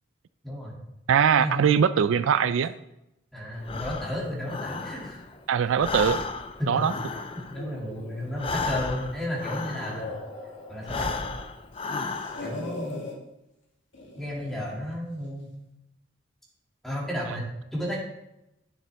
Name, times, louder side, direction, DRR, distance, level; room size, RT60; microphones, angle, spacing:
voice 1, 0.4-0.8 1.3-1.7 3.3-5.2 6.6-6.9 7.3-10.1 10.7-11.1 12.4-13.0 14.2-15.5 16.8-18.0, equal, ahead, -5 dB, 2.4 m, -33 dB
voice 2, 1.1-2.7 5.5-6.2 6.7-6.9, right 7 dB, 80° right, 14 dB, 0.4 m, -21 dB
Breathing, 3.6-5.4 5.7-10.3 10.8-12.7, left 4 dB, 25° left, 0.4 m, -34 dB
sound 1, 7.5-9.3 9.7-11.4 11.7-13.2 13.9-14.7, left 2 dB, 70° left, 2.6 m, -41 dB
10.5 x 6.8 x 3.5 m, 0.86 s
head